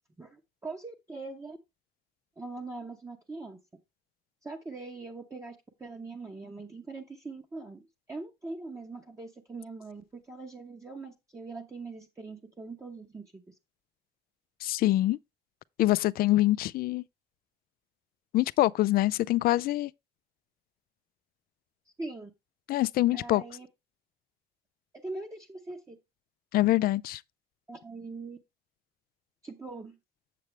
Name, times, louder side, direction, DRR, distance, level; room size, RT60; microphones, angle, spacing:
voice 1, 0.2-1.6 2.4-3.6 4.4-13.5 22.0-22.3 23.1-23.7 24.9-26.0 27.7-28.4 29.4-30.0, right 3 dB, 15° right, 1.0 m, -42 dB
voice 2, 14.6-15.2 15.8-17.0 18.3-19.9 22.7-23.4 26.5-27.2, left 16 dB, 60° left, 0.4 m, -25 dB
7.6 x 7.3 x 3.2 m
cardioid pair, 110°, 17 cm